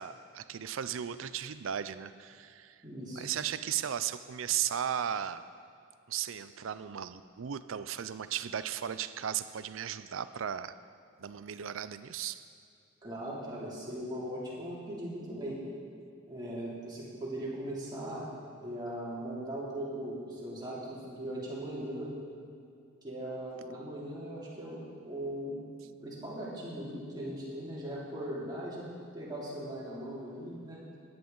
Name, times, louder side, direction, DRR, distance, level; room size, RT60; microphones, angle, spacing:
voice 1, 0.0-2.8 3.1-5.4 6.1-10.7 11.2-12.5, right 9 dB, 85° right, 13 dB, 0.5 m, -36 dB
voice 2, 2.8-3.2 13.0-15.6 16.3-18.3 18.6-22.1 23.0-25.6 26.0-28.9 29.1-30.8, right 1 dB, 20° right, -7 dB, 2.9 m, -39 dB
14.5 x 10.5 x 3.9 m, 2.4 s
head